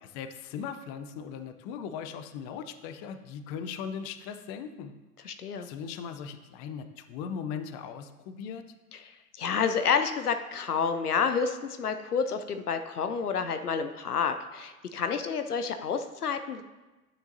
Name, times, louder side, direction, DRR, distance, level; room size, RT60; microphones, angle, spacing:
voice 1, 0.0-4.9 5.6-8.6, left 7 dB, 35° left, 9 dB, 0.6 m, -39 dB
voice 2, 5.2-5.7 8.9-16.6, left 6 dB, 90° left, 8 dB, 0.6 m, -29 dB
9.4 x 6.8 x 2.7 m, 1.1 s
figure-of-eight pair, 85°, 45 cm